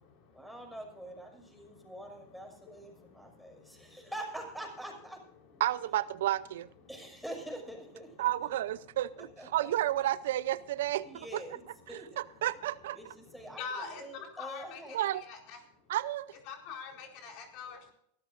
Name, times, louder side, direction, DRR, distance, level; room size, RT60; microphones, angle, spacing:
voice 1, 0.3-5.2 6.9-8.5 9.2-9.7 11.0-11.6 11.9-12.2 12.9-15.1, right 1 dB, ahead, 2 dB, 6.2 m, -45 dB
voice 2, 5.6-6.7 8.2-11.4 11.9-13.0 14.9-15.2 15.9-16.3, right 13 dB, 75° right, 17 dB, 0.6 m, -31 dB
voice 3, 13.6-14.0 14.4-15.6 16.4-17.9, left 5 dB, 55° left, 2 dB, 4.4 m, -43 dB
23.0 x 14.0 x 2.6 m, 0.69 s
hypercardioid pair, 110°, 0 cm